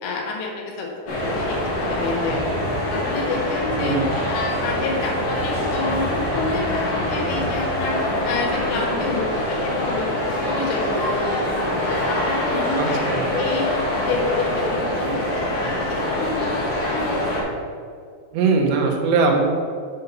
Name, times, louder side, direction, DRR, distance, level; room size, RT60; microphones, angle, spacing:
voice 1, 0.0-2.6 2.9-4.0 4.3-6.1 6.3-8.0 8.2-11.4 11.9-13.8 14.1-17.1 17.3-17.4, left 4 dB, 80° left, 0 dB, 3.7 m, -29 dB
sound 1, 1.1-17.4, left 1 dB, 45° left, 2.9 m, -24 dB
voice 2, 3.8-4.1 12.8-13.3 18.3-19.4, right 4 dB, 70° right, 0 dB, 3.1 m, -20 dB
7.9 x 5.5 x 5.6 m, 2.3 s
omnidirectional pair, 5.8 m